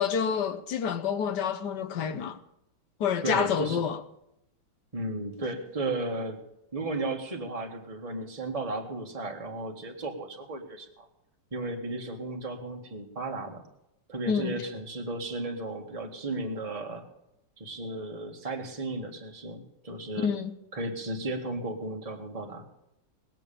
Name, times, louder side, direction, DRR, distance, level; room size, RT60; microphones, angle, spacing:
voice 1, 0.0-2.4 3.0-4.0 14.3-14.5 20.2-20.5, left 7 dB, 65° left, 1.4 m, -28 dB
voice 2, 3.2-3.8 4.9-6.4 6.7-10.9 11.5-13.6 14.1-17.0 17.6-20.3 20.7-22.6, right 2 dB, 20° right, 1.8 m, -34 dB
20.0 x 7.7 x 7.1 m
omnidirectional pair, 2.1 m